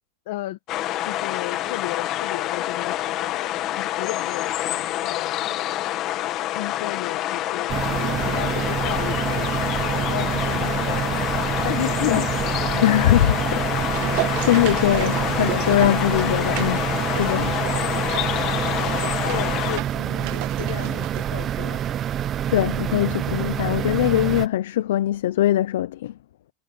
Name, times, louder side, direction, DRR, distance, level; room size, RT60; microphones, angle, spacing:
voice 1, 0.3-0.6 1.0-3.4 3.8-5.4 6.5-11.1 11.4-12.9 13.6-13.8 19.2-21.8 22.6-22.8, left 17 dB, 55° left, 1.2 m, -34 dB
sound 1, 0.7-19.8, left 14 dB, 30° left, 1.5 m, -27 dB
sound 2, 7.7-24.5, right 10 dB, 20° right, 0.6 m, -27 dB
voice 2, 12.8-14.1 14.4-17.6 22.5-26.1, left 13 dB, 75° left, 0.6 m, -22 dB
sound 3, 13.4-22.0 22.2-22.3, right 20 dB, 40° right, 1.4 m, -34 dB
supercardioid pair, 180°, 0 cm